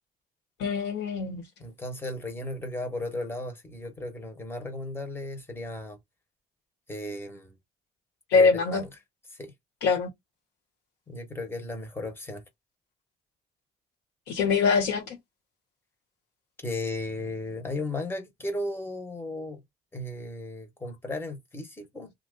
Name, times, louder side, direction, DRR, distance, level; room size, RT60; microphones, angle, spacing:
voice 1, 0.6-1.4 8.3-8.8 9.8-10.1 14.3-15.2, left 5 dB, 90° left, 1.5 m, -23 dB
voice 2, 1.6-6.0 6.9-7.5 8.3-8.9 9.4-9.5 11.1-12.4 16.6-19.6 19.9-22.1, left 2 dB, 15° left, 1.2 m, -35 dB
2.8 x 2.5 x 3.8 m
cardioid pair, 110°, 17 cm